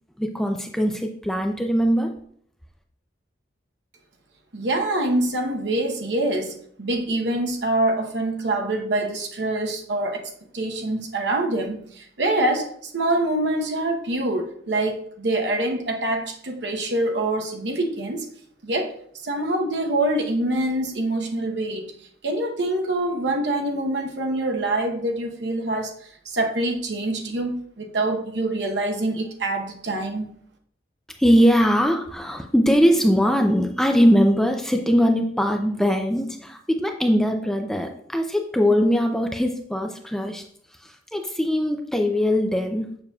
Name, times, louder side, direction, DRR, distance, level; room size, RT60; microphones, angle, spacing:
voice 1, 0.2-2.2 31.2-40.4 40.8-43.0, equal, 5° left, 0.4 m, -21 dB
voice 2, 4.5-18.2 18.6-19.0 19.2-21.9 22.2-30.3, right 1 dB, 70° right, 0.9 m, -25 dB
6.8 x 6.8 x 2.3 m
head